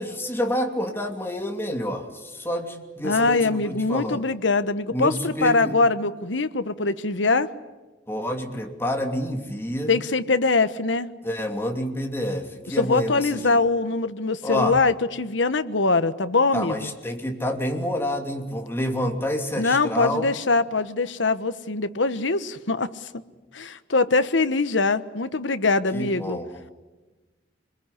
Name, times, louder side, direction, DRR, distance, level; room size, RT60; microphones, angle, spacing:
voice 1, 0.0-4.2 4.9-5.7 8.1-9.9 11.2-13.6 14.4-14.8 16.5-20.3 25.9-26.6, equal, 15° left, 3 dB, 2.8 m, -28 dB
voice 2, 3.0-7.5 9.9-11.1 12.8-16.7 19.6-23.1 23.5-26.4, left 3 dB, 80° left, 12 dB, 1.2 m, -23 dB
26.5 x 21.5 x 10.0 m, 1.2 s
head